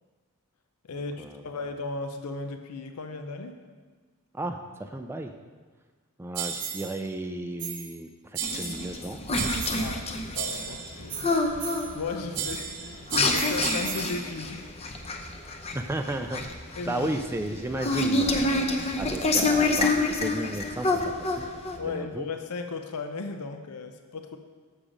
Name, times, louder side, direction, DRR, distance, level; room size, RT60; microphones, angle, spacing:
voice 1, 0.9-3.5 9.8-11.3 11.9-14.7 16.8-17.1 21.7-24.4, left 4 dB, 85° left, 6 dB, 0.6 m, -36 dB
voice 2, 4.3-5.3 6.2-9.2 12.4-12.5 15.7-16.4 16.9-21.5 21.8-22.3, right 1 dB, 10° right, 6 dB, 0.3 m, -34 dB
sound 1, 6.3-7.0 7.6-8.0 8.3-9.0 9.3-10.0 10.3-12.0 12.3-14.2, right 7 dB, 90° right, 0.9 m, -34 dB
sound 2, 8.4-21.8, left 2 dB, 30° left, 0.7 m, -27 dB
7.3 x 6.8 x 5.0 m, 1.4 s
head